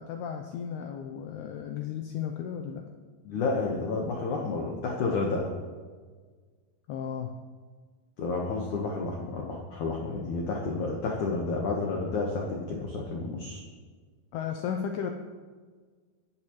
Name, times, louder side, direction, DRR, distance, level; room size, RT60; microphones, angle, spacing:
voice 1, 0.0-2.8 6.9-7.4 14.3-15.1, left 8 dB, 85° left, 4 dB, 2.3 m, -34 dB
voice 2, 3.3-5.4 8.2-13.6, left 3 dB, 70° left, -1 dB, 1.8 m, -30 dB
25.5 x 11.0 x 3.2 m, 1.5 s
omnidirectional pair, 5.5 m